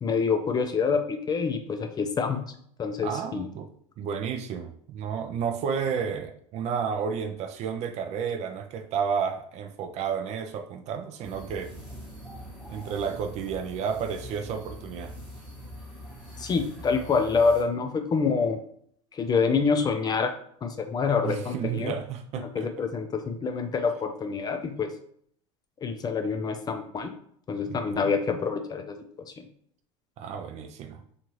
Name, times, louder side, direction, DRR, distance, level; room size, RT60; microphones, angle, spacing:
voice 1, 0.0-2.4 2.8-3.5 16.4-18.6 19.1-20.3 20.6-22.0 22.4-24.9 25.8-27.1 27.5-29.0 29.4-29.5, left 5 dB, 25° left, 5 dB, 0.4 m, -26 dB
voice 2, 3.0-3.7 4.0-11.7 12.7-15.1 21.2-22.7 27.6-28.1 30.2-31.0, right 7 dB, 45° right, 6 dB, 0.4 m, -31 dB
Playing with bells in a buddhist temple, 11.2-17.6, equal, 5° right, 1.0 m, -43 dB
2.7 x 2.4 x 3.0 m, 0.65 s
supercardioid pair, 100°, 16 cm